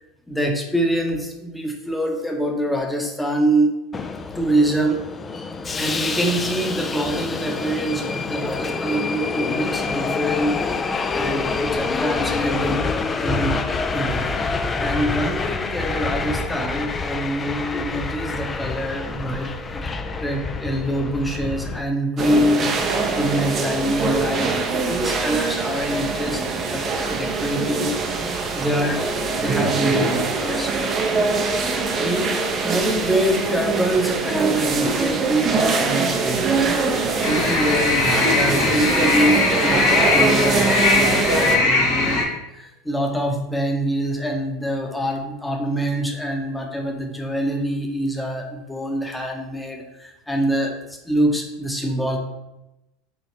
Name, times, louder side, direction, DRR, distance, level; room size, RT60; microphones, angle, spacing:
voice 1, 0.3-3.7 4.3-5.0 5.8-13.6 13.9-19.8 20.1-22.8 23.1-27.9 28.6-29.0 29.3-30.7 32.0-32.4 32.6-36.7 37.2-52.2, right 1 dB, 5° left, 1 dB, 0.8 m, -25 dB
Subway metro underground, 3.9-21.8, left 4 dB, 25° left, 0.3 m, -26 dB
sound 1, 22.2-41.6, right 4 dB, 40° right, 0.6 m, -23 dB
sound 2, 37.2-42.2, left 3 dB, 70° left, 0.9 m, -20 dB
4.3 x 2.8 x 3.0 m, 0.92 s
hypercardioid pair, 80°, 0 cm